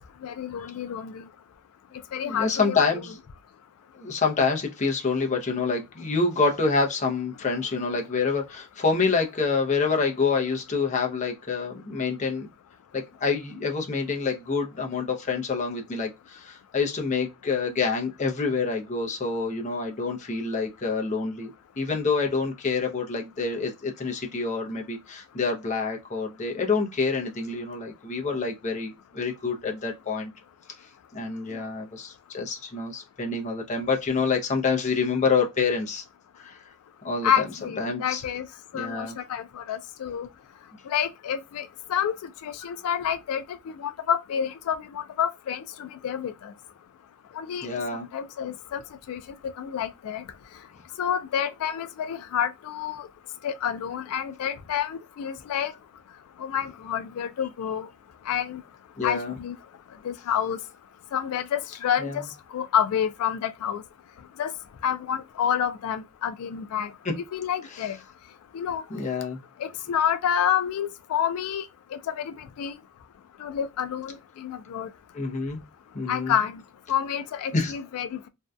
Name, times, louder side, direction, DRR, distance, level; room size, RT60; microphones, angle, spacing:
voice 1, 0.2-1.2 2.1-2.9 31.5-31.6 37.2-38.5 38.7-40.3 40.9-42.1 42.4-46.5 47.4-47.7 48.1-48.8 49.1-49.2 49.6-50.2 51.0-53.1 53.4-55.7 56.4-57.9 58.3-58.6 59.0-59.5 60.0-60.6 61.1-62.2 62.5-63.8 64.4-64.5 64.8-68.0 68.5-68.8 69.6-71.7 71.9-72.7 73.4-74.9 76.1-76.6 76.9-78.2, left 9 dB, 90° left, 0.3 m, -28 dB
voice 2, 2.2-3.2 4.0-12.5 12.9-21.5 21.8-30.3 31.1-36.0 36.4-36.6 37.0-37.5 37.8-38.2 38.7-39.2 47.6-48.1 59.0-59.4 62.0-62.2 67.0-67.2 67.7-67.9 68.9-69.4 75.1-75.6 75.9-76.3 77.5-77.7, left 4 dB, 35° left, 0.5 m, -27 dB
2.6 x 2.2 x 2.2 m
head